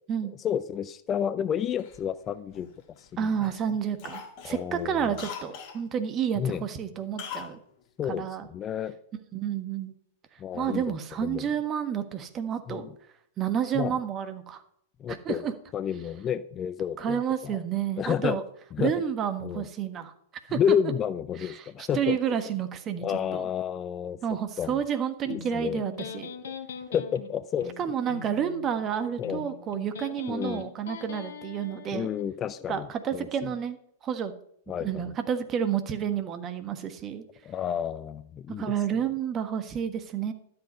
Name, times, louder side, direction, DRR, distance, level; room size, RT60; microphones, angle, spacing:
voice 1, 0.4-2.7 3.0-3.3 4.4-5.1 6.4-6.6 8.0-8.9 10.4-10.8 11.2-11.5 12.7-12.9 13.7-14.0 15.0-17.6 18.0-18.4 18.7-18.9 19.4-19.7 20.5-22.2 22.5-22.6 23.0-24.2 24.6-24.8 25.3-25.8 26.9-27.7 29.2-29.4 30.3-30.7 31.9-33.5 34.7-35.1 37.4-38.7, left 9 dB, 25° left, 16 dB, 0.5 m, -30 dB
Cough, 1.8-3.0 3.4-3.6 4.0-5.8 7.2-7.5 7.8-7.9, left 8 dB, 45° left, 2.0 m, -41 dB
voice 2, 3.2-7.6 8.1-8.5 9.3-9.9 10.5-12.9 13.4-14.6 15.1-15.5 17.0-18.4 18.8-20.1 20.5-20.8 21.4-23.1 23.3-23.5 24.2-26.3 27.8-32.1 32.7-33.8 34.0-34.3 34.8-37.2 38.6-40.3, right 8 dB, 30° right, 9 dB, 1.4 m, -30 dB
Electric guitar, 25.3-32.3, left 6 dB, 65° left, 1.3 m, -42 dB
12.0 x 7.9 x 5.4 m, 0.69 s
figure-of-eight pair, 100°, 0 cm